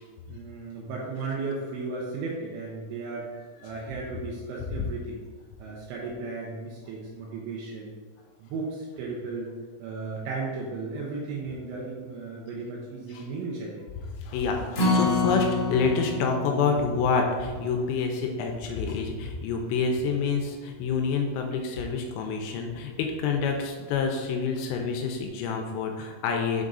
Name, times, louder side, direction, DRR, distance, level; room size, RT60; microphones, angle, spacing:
voice 1, 0.3-3.3 3.6-5.2 5.6-8.0 8.4-9.5 9.8-13.9, right 3 dB, 80° right, -4 dB, 2.9 m, -35 dB
voice 2, 14.2-26.6, left 5 dB, 85° left, 2 dB, 3.1 m, -28 dB
Acoustic guitar, 14.7-21.1 21.5-21.6 22.0-22.1, left 2 dB, 70° left, 1.8 m, -30 dB
7.7 x 3.6 x 3.9 m, 1.5 s
omnidirectional pair, 5.8 m